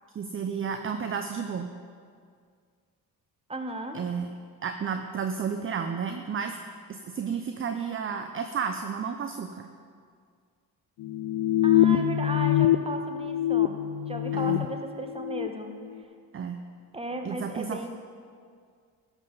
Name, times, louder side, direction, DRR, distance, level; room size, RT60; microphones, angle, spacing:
voice 1, 0.1-1.7 3.9-4.3 4.6-6.6 6.9-9.7 14.3-14.6 16.3-16.6 17.2-17.9, right 6 dB, 30° right, 6 dB, 0.6 m, -32 dB
voice 2, 3.5-4.0 11.6-13.8 14.1-15.8 16.9-17.9, right 2 dB, 15° right, 5 dB, 1.1 m, -35 dB
sound 1, 11.0-12.8 13.1-14.7 15.1-15.5, left 12 dB, 55° left, 0.5 m, -24 dB
11.5 x 7.4 x 4.0 m, 2.1 s
supercardioid pair, 55°, 42 cm